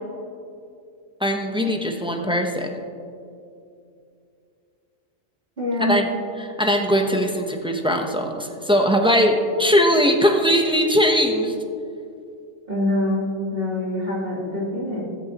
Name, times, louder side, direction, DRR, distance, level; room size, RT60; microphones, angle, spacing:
voice 1, 1.2-2.7 5.8-6.0 6.6-11.5, equal, 5° right, 2 dB, 0.7 m, -20 dB
voice 2, 5.6-6.0 12.7-15.0, left 1 dB, 45° right, -8 dB, 3.6 m, -24 dB
14.5 x 14.0 x 3.0 m, 2.5 s
omnidirectional pair, 1.4 m